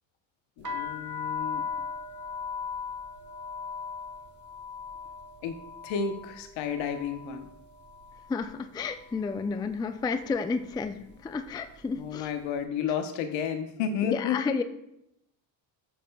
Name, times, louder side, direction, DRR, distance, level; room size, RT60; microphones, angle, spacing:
voice 1, 0.6-1.7 5.4-5.6 5.8-7.5 12.0-14.6, left 7 dB, 65° left, 8 dB, 1.0 m, -31 dB
sound 1, 0.6-8.5 8.8-9.4 10.1-10.4 10.6-12.1, left 5 dB, 35° right, 1.2 m, -38 dB
voice 2, 8.3-12.3 14.0-14.6, left 4 dB, 10° left, 9 dB, 0.3 m, -31 dB
8.3 x 6.8 x 2.3 m, 0.81 s
supercardioid pair, 75°, 49 cm